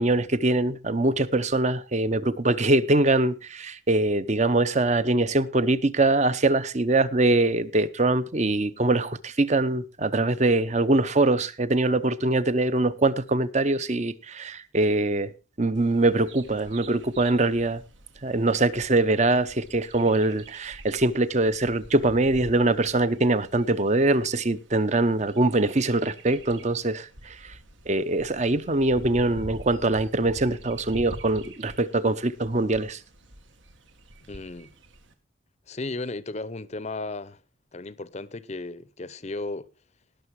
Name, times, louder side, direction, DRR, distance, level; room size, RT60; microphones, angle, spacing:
voice 1, 0.0-15.3 15.6-17.8 18.2-27.5 27.9-33.0, right 2 dB, 35° right, 0.8 m, -23 dB
Bird vocalization bird call bird song, 15.7-35.1, right 1 dB, 75° right, 1.9 m, -47 dB
voice 2, 34.3-34.7 35.7-37.4 37.7-39.7, left 2 dB, 35° left, 0.7 m, -35 dB
18.5 x 6.8 x 4.7 m
head